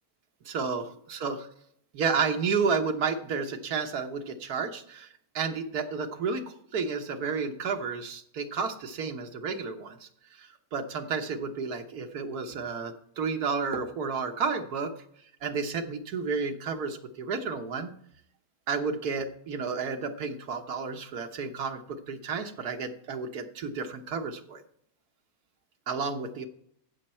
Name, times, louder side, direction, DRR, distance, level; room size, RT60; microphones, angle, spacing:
voice 1, 0.4-1.5 1.9-5.1 5.3-6.4 6.7-14.9 15.4-17.9 18.7-24.6 25.9-26.5, right 5 dB, 80° right, 6 dB, 1.6 m, -31 dB
15.0 x 6.7 x 4.4 m, 0.70 s
omnidirectional pair, 1.6 m